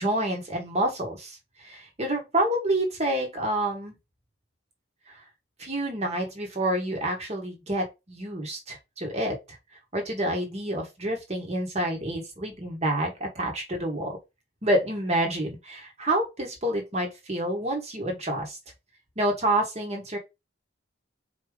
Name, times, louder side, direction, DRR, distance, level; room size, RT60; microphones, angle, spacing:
voice 1, 0.0-3.9 5.6-9.6 9.9-14.2 14.6-18.6 19.2-20.2, right 1 dB, 35° right, 1.3 m, -28 dB
4.5 x 3.6 x 3.3 m
head